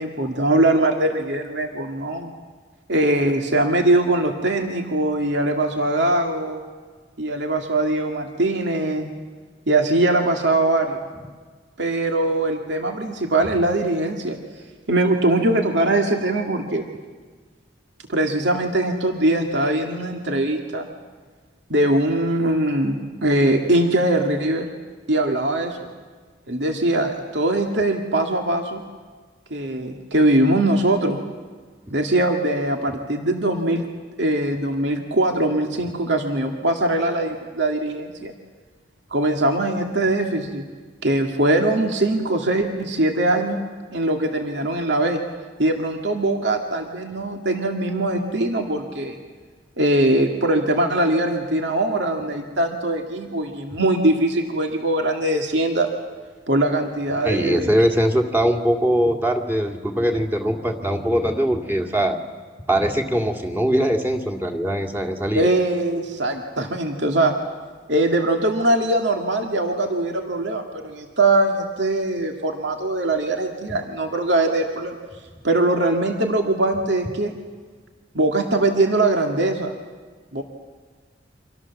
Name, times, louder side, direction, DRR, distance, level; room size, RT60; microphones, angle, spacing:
voice 1, 0.0-2.3 2.9-6.6 7.2-9.1 9.7-11.0 11.8-14.4 14.9-16.9 18.1-20.9 21.7-24.7 25.1-25.9 26.5-28.8 29.5-31.2 31.9-33.9 34.2-38.3 39.1-40.6 41.0-43.6 43.9-45.2 45.6-49.2 49.8-55.9 56.5-57.8 65.3-67.3 67.9-75.0 75.4-77.4 78.1-79.7 80.3-80.4, right 1 dB, 75° right, 3 dB, 2.2 m, -21 dB
voice 2, 57.1-62.2 62.7-65.5, equal, 10° right, 2 dB, 2.2 m, -21 dB
29.5 x 26.0 x 7.2 m, 1.5 s
head